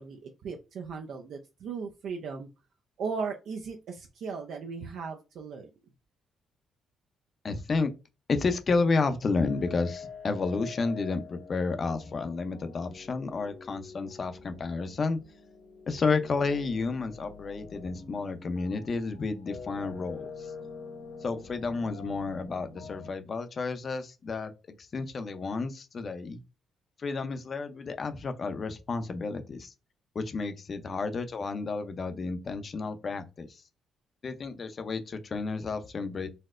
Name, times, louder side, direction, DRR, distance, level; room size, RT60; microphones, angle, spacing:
voice 1, 0.0-2.5 3.0-5.7, right 5 dB, 70° right, 0.4 m, -37 dB
voice 2, 7.4-7.9 8.3-15.2 15.9-20.5 21.2-24.5 24.8-26.4 27.0-29.7 30.1-33.6 34.2-36.3, left 4 dB, 45° left, 0.5 m, -31 dB
sound 1, 9.4-23.1, left 5 dB, 70° left, 1.4 m, -46 dB
4.1 x 2.1 x 2.4 m
cardioid pair, 90°, 0 cm